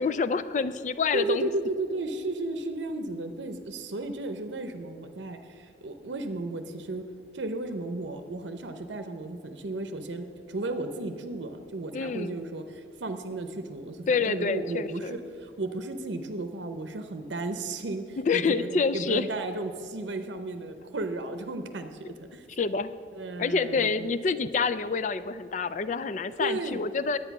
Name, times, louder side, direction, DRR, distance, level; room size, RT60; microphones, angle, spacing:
voice 1, 0.0-1.5 11.9-12.4 14.1-15.2 18.3-19.3 22.6-22.9 23.4-27.2, left 5 dB, 40° left, 14 dB, 0.4 m, -27 dB
voice 2, 1.1-7.0 7.3-22.5 23.1-24.1 26.4-26.8, right 2 dB, 85° right, 7 dB, 0.7 m, -34 dB
10.0 x 8.7 x 5.9 m, 2.3 s
head